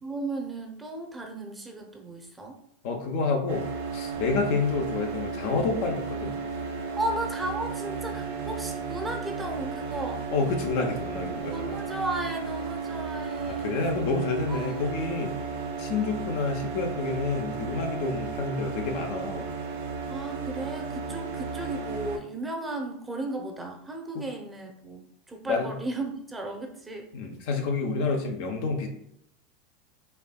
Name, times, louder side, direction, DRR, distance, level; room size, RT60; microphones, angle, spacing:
voice 1, 0.0-2.6 7.0-10.2 11.5-13.8 14.5-14.8 20.1-27.1, right 2 dB, 15° right, 2 dB, 0.7 m, -35 dB
voice 2, 2.8-3.7 3.9-6.3 10.3-11.7 13.5-15.3 15.8-19.5 24.1-24.2 25.5-25.7 27.1-28.9, left 4 dB, 65° left, 3 dB, 0.7 m, -29 dB
sound 1, 3.5-22.2, right 5 dB, 75° right, 0.7 m, -34 dB
4.3 x 2.6 x 2.3 m, 0.74 s
hypercardioid pair, 95°, 0 cm